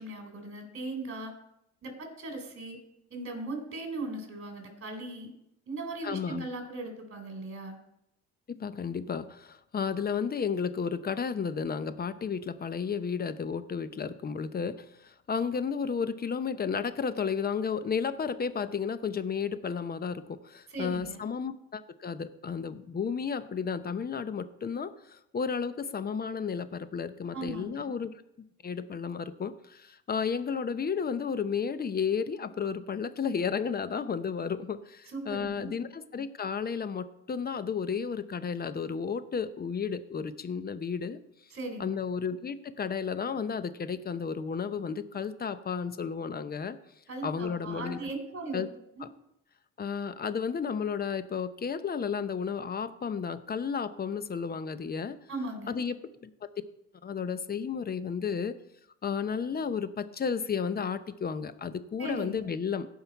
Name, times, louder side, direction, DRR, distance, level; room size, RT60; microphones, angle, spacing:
voice 1, 0.0-1.3 1.8-2.8 3.1-5.3 5.7-7.8 20.7-21.3 27.3-27.9 35.1-35.7 41.5-41.8 47.1-48.6 55.3-55.8 62.0-62.5, right 2 dB, 40° right, 4 dB, 3.4 m, -38 dB
voice 2, 6.0-6.5 8.5-28.2 28.6-41.2 41.8-46.8 47.2-48.1 48.5-48.7 49.0-49.1 49.8-55.2 55.7-55.9 56.2-56.5 57.0-58.6 59.0-62.9, left 6 dB, 25° left, 13 dB, 0.7 m, -33 dB
16.5 x 5.7 x 4.5 m, 0.81 s
cardioid pair, 100°, 34 cm